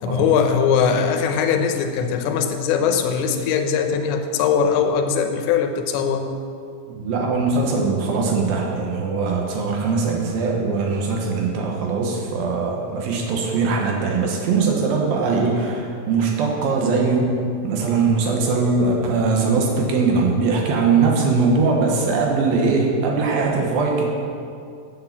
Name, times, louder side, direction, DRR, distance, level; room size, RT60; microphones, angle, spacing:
voice 1, 0.0-6.3, left 6 dB, 75° left, 6 dB, 2.9 m, -20 dB
voice 2, 6.9-24.0, right 4 dB, 70° right, 0 dB, 2.3 m, -21 dB
8.5 x 8.2 x 7.3 m, 2.4 s
omnidirectional pair, 5.6 m